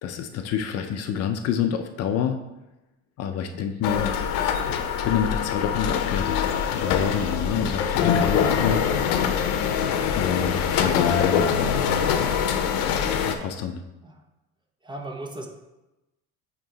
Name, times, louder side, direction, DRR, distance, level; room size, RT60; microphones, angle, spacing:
voice 1, 0.0-2.4 3.2-4.1 4.7-8.8 10.2-12.0 13.2-13.8, left 8 dB, 50° left, 6 dB, 0.5 m, -28 dB
sound 1, 3.8-13.3, left 7 dB, 90° left, 0.7 m, -24 dB
voice 2, 14.8-15.5, right 2 dB, 15° right, 2 dB, 0.8 m, -37 dB
8.5 x 3.0 x 3.9 m, 1.0 s
cardioid pair, 125°, 31 cm